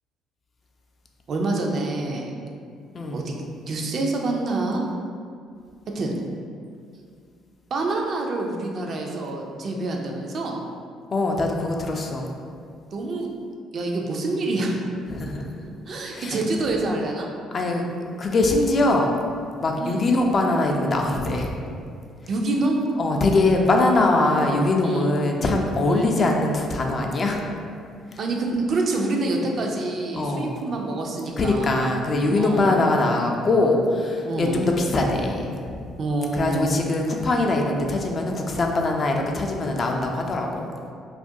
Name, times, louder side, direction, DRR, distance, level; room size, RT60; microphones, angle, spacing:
voice 1, 1.3-2.3 3.1-3.3 3.7-4.8 5.9-6.2 7.7-10.6 12.9-13.3 13.7-14.8 15.7-17.3 19.8-20.1 22.3-22.8 24.1-24.4 24.8-25.1 25.9-26.1 28.2-32.0 32.3-32.7 34.2-34.6 36.0-36.7, right 2 dB, 50° right, 1 dB, 0.3 m, -26 dB
voice 2, 11.1-12.3 15.1-15.4 16.1-16.4 17.5-17.9 18.2-19.1 19.6-21.5 23.0-27.4 28.1-28.2 30.1-30.5 31.4-35.8 36.3-40.7, left 2 dB, 40° left, 1 dB, 0.3 m, -22 dB
2.4 x 2.2 x 2.6 m, 2.3 s
supercardioid pair, 70°, 0 cm